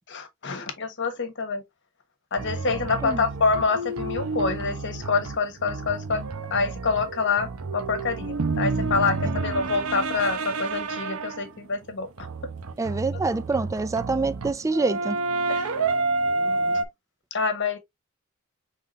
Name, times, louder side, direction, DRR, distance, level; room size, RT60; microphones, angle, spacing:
voice 1, 0.1-1.6 2.3-6.2 6.5-12.3 15.5-15.7 17.3-17.8, left 4 dB, 60° left, 1.2 m, -26 dB
sound 1, 2.4-11.5 12.2-16.9, right 3 dB, 85° right, 0.7 m, -29 dB
voice 2, 12.8-15.2, right 3 dB, 15° right, 0.3 m, -26 dB
5.6 x 3.5 x 2.4 m
head